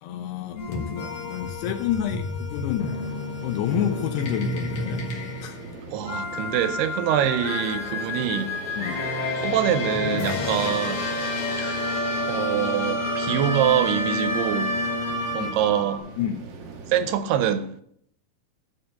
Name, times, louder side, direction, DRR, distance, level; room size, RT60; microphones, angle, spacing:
voice 1, 0.0-3.0 3.4-5.1 5.4-5.6 8.8-9.0 10.6-10.7 15.4-15.5 16.2-16.4, left 10 dB, 90° left, 2.9 m, -29 dB
sound 1, 0.6-16.0, left 2 dB, 55° left, 1.7 m, -29 dB
sound 2, 3.0-17.2, right 4 dB, 65° right, 1.6 m, -43 dB
voice 2, 5.9-8.5 9.4-11.1 11.6-11.8 12.3-14.7 15.3-16.0 16.9-17.8, right 10 dB, 80° right, 2.6 m, -25 dB
7.0 x 6.9 x 7.6 m
omnidirectional pair, 4.6 m